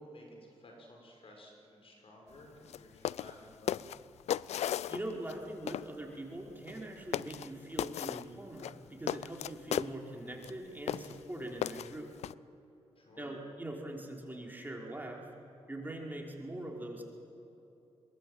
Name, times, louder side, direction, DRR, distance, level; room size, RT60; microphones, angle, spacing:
voice 1, 0.0-3.9 13.0-13.3, equal, 55° left, 1 dB, 6.4 m, -54 dB
sound 1, 2.7-2.8 3.1-3.3 3.7-5.4 5.7-5.9 6.7-6.8 7.1-7.5 7.8-8.3 8.6-9.9 10.4-10.5 10.9-11.2 11.6-12.3, left 11 dB, 80° left, 0.4 m, -35 dB
voice 2, 4.9-12.1 13.2-15.3 15.7-17.0, right 1 dB, 15° right, -1 dB, 5.2 m, -42 dB
22.5 x 20.0 x 9.0 m, 3.0 s
supercardioid pair, 50°, 11 cm